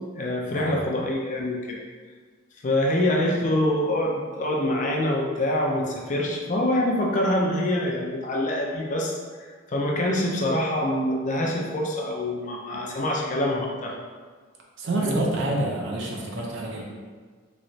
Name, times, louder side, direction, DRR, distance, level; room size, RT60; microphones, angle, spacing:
voice 1, 0.2-1.8 2.6-9.2 9.7-13.9 14.9-15.2, left 1 dB, 35° left, -1 dB, 0.4 m, -25 dB
voice 2, 14.8-16.8, right 2 dB, 55° right, -2 dB, 0.6 m, -27 dB
3.1 x 3.0 x 2.7 m, 1.5 s
head